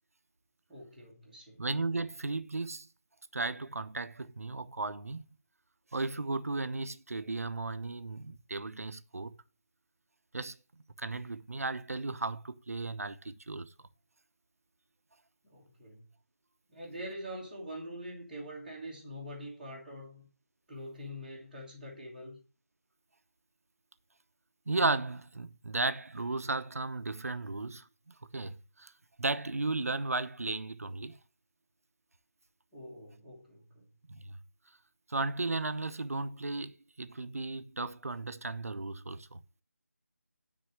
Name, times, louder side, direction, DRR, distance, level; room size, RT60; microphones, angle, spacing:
voice 1, 0.7-1.6 15.5-16.1 16.7-20.3 20.7-22.4 32.7-33.8, equal, ahead, 1.3 m, -44 dB
voice 2, 1.6-2.9 3.3-5.2 5.9-9.4 10.3-13.7 24.7-28.9 29.2-31.2 34.1-34.4 35.1-39.4, right 3 dB, 65° right, 0.9 m, -35 dB
9.8 x 4.1 x 7.3 m
figure-of-eight pair, 180°, 9 cm